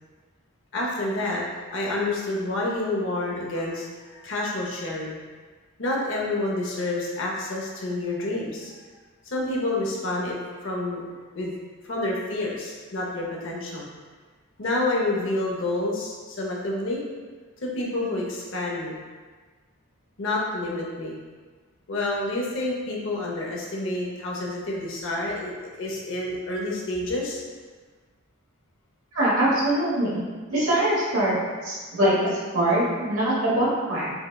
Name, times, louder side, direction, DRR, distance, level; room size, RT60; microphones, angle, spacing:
voice 1, 0.7-1.4 1.7-5.2 5.8-8.7 9.2-11.1 11.4-11.5 11.8-13.8 14.6-17.0 17.6-19.0 20.2-21.2 21.9-27.4, left 2 dB, 60° left, -3 dB, 0.6 m, -28 dB
voice 2, 29.1-30.2 30.5-34.1, right 1 dB, 85° right, -6 dB, 1.1 m, -23 dB
5.4 x 2.1 x 2.2 m, 1.4 s
head